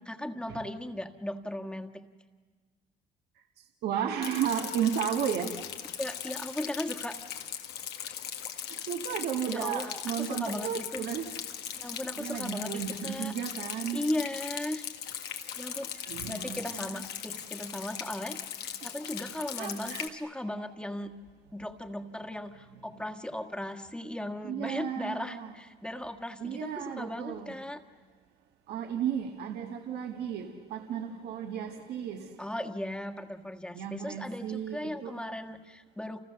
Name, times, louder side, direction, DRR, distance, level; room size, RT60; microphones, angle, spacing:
voice 1, 0.0-2.1 6.0-7.2 9.4-11.1 11.7-13.3 13.9-14.8 15.6-15.9 16.3-21.2 21.5-27.8 32.4-36.2, left 1 dB, 5° left, 5 dB, 1.6 m, -37 dB
voice 2, 3.8-5.5 8.9-11.3 12.2-14.0 15.9-16.9 19.6-20.1 22.7-22.8 24.4-25.6 26.4-27.6 28.7-32.3 33.7-35.1, right 9 dB, 75° right, 3 dB, 1.8 m, -34 dB
Rain, 4.2-20.1, left 9 dB, 80° left, 1.9 m, -39 dB
29.5 x 29.5 x 6.8 m, 1.4 s
cardioid pair, 110°, 17 cm